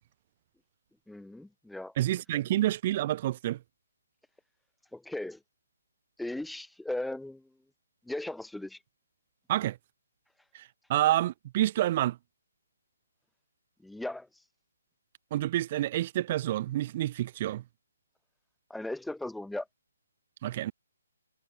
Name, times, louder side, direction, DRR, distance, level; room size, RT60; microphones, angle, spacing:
voice 1, 1.1-1.9 4.9-5.4 6.2-7.4 8.1-8.8 13.8-14.3 18.7-19.7, left 1 dB, ahead, 2.0 m, -37 dB
voice 2, 2.0-3.6 9.5-9.8 10.5-12.2 15.3-17.6 20.4-20.7, right 14 dB, 35° right, 1.4 m, -28 dB
figure-of-eight pair, 140°, 0 cm